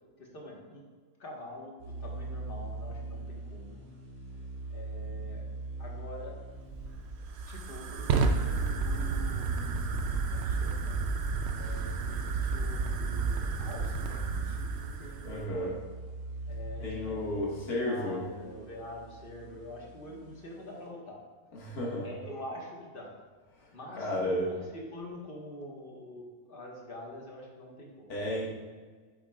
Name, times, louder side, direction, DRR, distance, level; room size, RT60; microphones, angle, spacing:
voice 1, 0.2-0.8 1.2-3.8 4.7-5.5 5.8-6.4 7.5-11.0 11.5-15.8 16.4-21.2 22.0-23.1 23.6-28.1, left 1 dB, 40° left, -2 dB, 1.6 m, -45 dB
sound 1, 1.8-20.9, right 2 dB, 85° right, 2.1 m, -44 dB
Fire, 6.5-15.5, right 4 dB, 65° right, 0.7 m, -31 dB
voice 2, 15.2-15.7 16.8-18.2 21.6-22.1 24.0-24.4 28.1-28.5, left 1 dB, 85° left, -4 dB, 2.2 m, -32 dB
8.3 x 7.7 x 2.4 m, 1.5 s
omnidirectional pair, 1.6 m